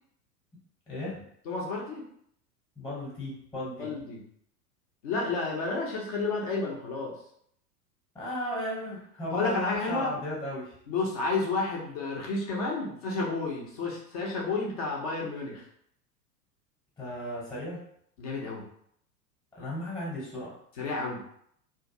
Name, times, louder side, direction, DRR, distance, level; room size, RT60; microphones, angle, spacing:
voice 1, 0.9-1.2 2.8-3.9 8.1-10.8 17.0-17.8 19.5-20.5, left 1 dB, 5° left, -6 dB, 0.7 m, -35 dB
voice 2, 1.5-2.0 3.8-4.2 5.0-7.1 9.3-10.1 10.9-15.6 18.2-18.6 20.8-21.2, left 3 dB, 25° left, -2 dB, 0.3 m, -31 dB
2.4 x 2.2 x 2.5 m, 0.68 s
figure-of-eight pair, 90°, 49 cm